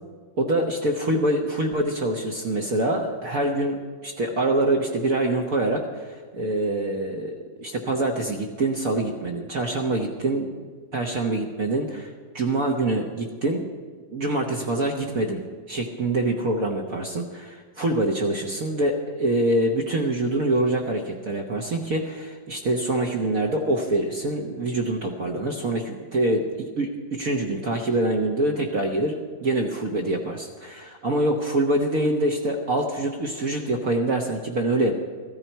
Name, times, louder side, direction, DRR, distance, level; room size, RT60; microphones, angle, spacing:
voice 1, 0.4-10.6 10.9-12.1 12.3-13.6 14.1-15.4 15.7-34.9, right 2 dB, 50° right, 0 dB, 1.3 m, -25 dB
15.0 x 13.5 x 4.5 m, 1.5 s
omnidirectional pair, 2.1 m